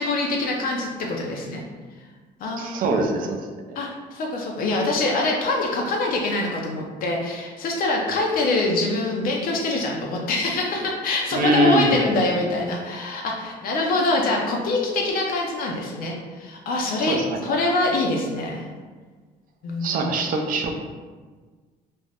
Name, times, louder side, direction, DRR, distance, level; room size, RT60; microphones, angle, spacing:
voice 1, 0.0-1.6 2.4-2.8 3.8-18.6 19.6-20.0, left 2 dB, 60° left, 0 dB, 0.5 m, -24 dB
voice 2, 2.6-3.4 3.7-3.8 11.3-12.0 17.0-17.5 19.8-20.7, right 1 dB, 55° right, 3 dB, 0.4 m, -23 dB
2.5 x 2.1 x 3.3 m, 1.4 s
cardioid pair, 110°, 17 cm